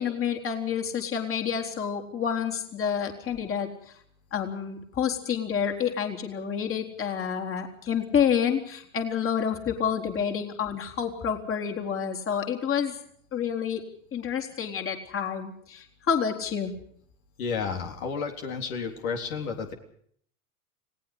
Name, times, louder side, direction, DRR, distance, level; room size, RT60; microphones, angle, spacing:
voice 1, 0.0-3.7 4.3-12.9 13.3-13.8 14.1-16.7, left 7 dB, 30° left, 2 dB, 4.0 m, -28 dB
voice 2, 17.4-19.7, left 5 dB, 70° left, 4 dB, 3.9 m, -31 dB
30.0 x 19.0 x 5.2 m, 0.62 s
hypercardioid pair, 90°, 43 cm